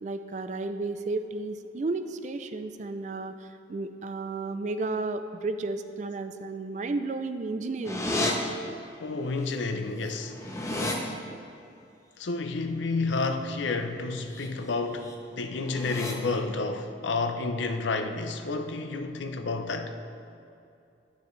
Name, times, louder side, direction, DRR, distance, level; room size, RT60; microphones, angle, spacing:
voice 1, 0.0-8.1, right 3 dB, 40° right, 0.4 m, -33 dB
sound 1, 7.8-8.3 9.5-9.6 9.9-11.0 14.1-14.5 14.8-15.1 15.6-16.1, left 2 dB, 15° left, 0.7 m, -32 dB
voice 2, 9.0-10.8 12.2-19.9, left 3 dB, 80° left, 0.6 m, -30 dB
9.4 x 9.3 x 3.2 m
head